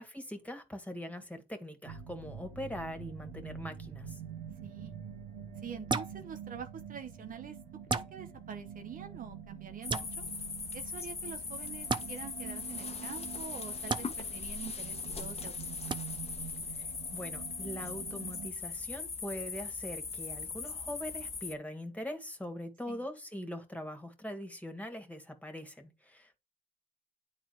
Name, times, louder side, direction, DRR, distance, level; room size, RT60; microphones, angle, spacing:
voice 1, 0.0-4.2 16.8-26.3, left 1 dB, 10° left, 2.2 m, -42 dB
sound 1, 1.8-18.5, right 8 dB, 90° right, 1.6 m, -46 dB
voice 2, 4.6-4.9 5.6-7.6 7.9-10.3 10.7-15.8 22.9-23.0, right 7 dB, 55° right, 1.0 m, -46 dB
sound 2, 5.9-6.1 7.9-8.1 9.9-10.1 11.9-12.0 13.9-14.0 15.9-16.0, right 4 dB, 30° right, 0.8 m, -31 dB
sound 3, 9.8-21.5, left 5 dB, 40° left, 1.2 m, -40 dB
9.1 x 4.1 x 4.6 m
supercardioid pair, 55°, 17 cm